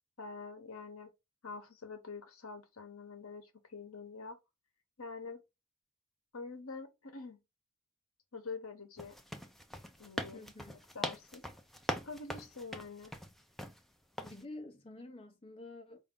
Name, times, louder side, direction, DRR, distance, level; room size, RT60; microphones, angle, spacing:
voice 1, 0.2-1.1 1.4-4.4 5.0-5.4 6.3-7.4 8.3-9.1 10.0-10.5 10.9-11.4 12.0-13.1, left 4 dB, 70° left, 0.9 m, -46 dB
sound 1, 9.0-13.8 14.2-14.4, equal, ahead, 0.4 m, -41 dB
voice 2, 10.3-10.7 14.2-16.0, left 2 dB, 25° left, 0.9 m, -49 dB
4.8 x 2.6 x 3.6 m
head